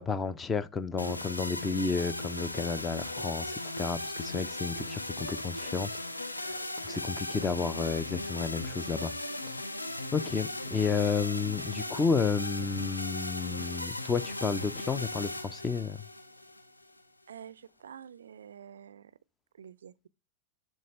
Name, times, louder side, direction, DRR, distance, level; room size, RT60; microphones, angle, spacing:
voice 1, 0.0-5.9 6.3-9.1 10.1-16.0, left 5 dB, 15° left, 0.6 m, -31 dB
sound 1, 1.0-17.0, left 1 dB, 85° left, 0.6 m, -37 dB
voice 2, 10.7-11.1 17.3-19.2 19.5-20.1, right 8 dB, 65° right, 0.4 m, -49 dB
10.5 x 3.6 x 3.1 m
figure-of-eight pair, 90°, 0 cm